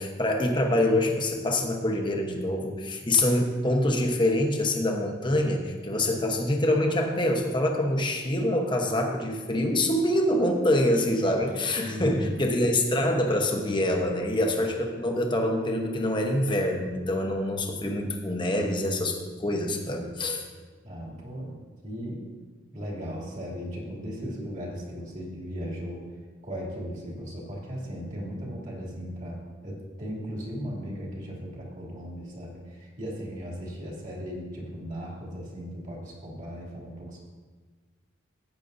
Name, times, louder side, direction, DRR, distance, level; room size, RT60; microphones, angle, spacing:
voice 1, 0.0-20.4, left 1 dB, 25° left, 2 dB, 1.0 m, -25 dB
voice 2, 11.8-12.4 20.8-21.5 21.8-22.2 22.7-26.0 26.4-37.2, equal, 40° right, -3 dB, 2.6 m, -37 dB
14.5 x 9.2 x 2.7 m, 1.4 s
head